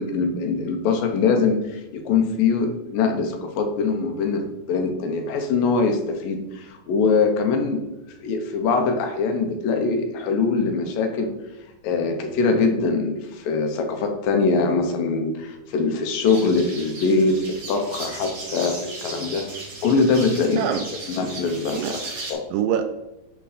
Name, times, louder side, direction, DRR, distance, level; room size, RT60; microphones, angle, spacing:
voice 1, 0.0-7.8 8.2-11.3 11.8-19.5 19.8-20.6 21.2-21.8 22.3-22.4, left 4 dB, 75° left, 4 dB, 2.6 m, -22 dB
sound 1, 16.2-22.3, right 2 dB, 45° right, 1.1 m, -36 dB
voice 2, 21.7-22.9, right 9 dB, 80° right, 7 dB, 2.2 m, -26 dB
10.5 x 3.8 x 5.0 m, 0.93 s
omnidirectional pair, 4.2 m